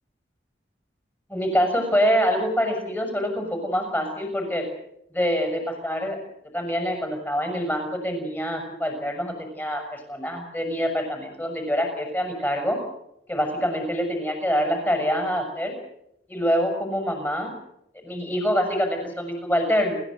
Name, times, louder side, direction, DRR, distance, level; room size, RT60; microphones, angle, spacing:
voice 1, 1.3-4.7 5.1-6.2 6.5-12.8 13.3-15.7 16.3-17.5 17.9-19.9, equal, 10° left, 4 dB, 7.1 m, -25 dB
29.0 x 15.0 x 8.0 m, 0.78 s
head